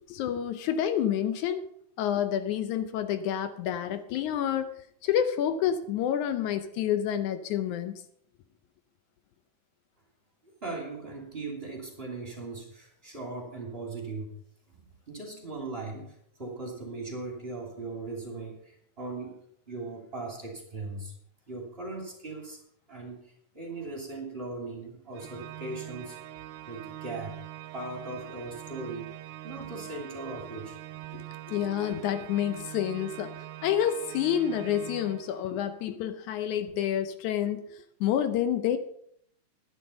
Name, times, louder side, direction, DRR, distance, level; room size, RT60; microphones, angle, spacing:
voice 1, 0.1-1.6 2.0-4.7 5.0-8.0 31.1-33.3 33.6-37.6 38.0-38.8, left 10 dB, 80° left, 10 dB, 2.1 m, -28 dB
voice 2, 10.4-14.3 15.1-19.3 19.7-21.1 21.5-22.6 22.9-23.1 23.5-26.2 26.7-27.4 27.7-29.2 29.4-30.8, right 3 dB, 20° right, 0 dB, 2.7 m, -39 dB
Organ, 25.1-35.7, right 15 dB, 80° right, 2.0 m, -44 dB
11.0 x 10.5 x 5.5 m, 0.69 s
omnidirectional pair, 3.5 m